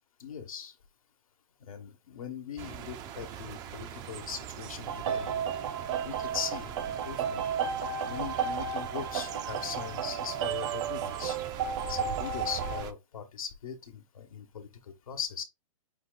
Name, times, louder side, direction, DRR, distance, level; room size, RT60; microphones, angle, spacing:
voice 1, 0.2-0.7 1.6-5.4 6.0-7.4 8.1-11.4 11.9-14.7 15.1-15.4, left 8 dB, 85° left, 1.1 m, -40 dB
sound 1, 2.6-12.9, right 9 dB, 20° right, 0.4 m, -42 dB
sound 2, 4.9-12.8, right 7 dB, 60° right, 1.0 m, -33 dB
5.7 x 2.3 x 3.7 m
hypercardioid pair, 140°, 17 cm